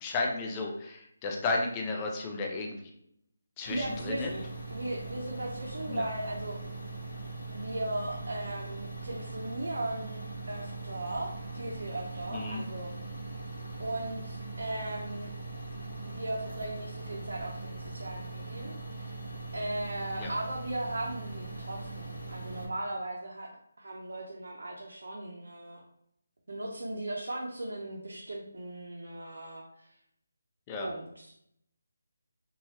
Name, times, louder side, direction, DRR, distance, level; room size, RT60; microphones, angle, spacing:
voice 1, 0.0-2.8 3.6-4.3 5.9-6.0 12.3-12.6 20.2-20.3 30.7-30.9, left 3 dB, 20° left, 1 dB, 0.5 m, -33 dB
sound 1, 3.7-22.7, right 3 dB, 65° left, 0.9 m, -41 dB
voice 2, 3.7-4.4 4.7-6.6 7.5-10.2 10.5-12.9 13.8-15.3 16.0-19.2 19.5-23.5 23.8-25.8 26.5-29.9 30.8-31.3, right 1 dB, 75° right, -2 dB, 0.6 m, -37 dB
2.6 x 2.3 x 3.1 m, 0.73 s
figure-of-eight pair, 160°, 0 cm